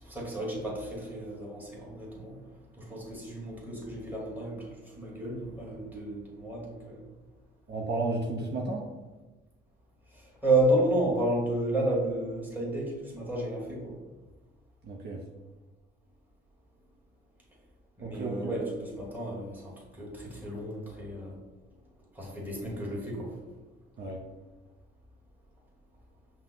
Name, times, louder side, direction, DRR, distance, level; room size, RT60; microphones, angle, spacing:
voice 1, 0.0-2.4 2.8-7.0 10.4-14.0 18.0-21.4 22.1-23.4, right 1 dB, 10° right, -4 dB, 1.5 m, -31 dB
voice 2, 7.7-8.8 14.8-15.2 18.0-18.3 24.0-24.2, right 2 dB, 55° right, 0 dB, 0.6 m, -32 dB
5.5 x 2.1 x 3.9 m, 1.2 s
cardioid pair, 90°, 20 cm